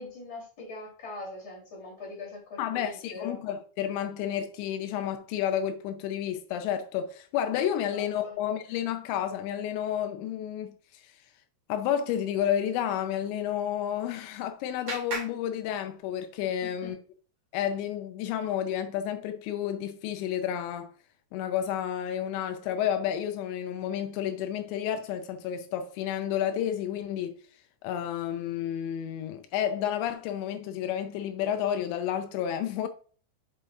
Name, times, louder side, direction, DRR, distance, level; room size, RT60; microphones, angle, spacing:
voice 1, 0.0-3.4 7.9-8.4 16.6-16.9, left 2 dB, 25° left, 3.4 m, -42 dB
voice 2, 2.6-11.0 11.7-17.0 17.5-20.9 21.3-27.3 27.8-32.9, left 10 dB, 85° left, 2.9 m, -31 dB
Clapping, 13.8-16.4, right 2 dB, 40° right, 2.6 m, -41 dB
7.1 x 6.4 x 2.6 m
omnidirectional pair, 5.1 m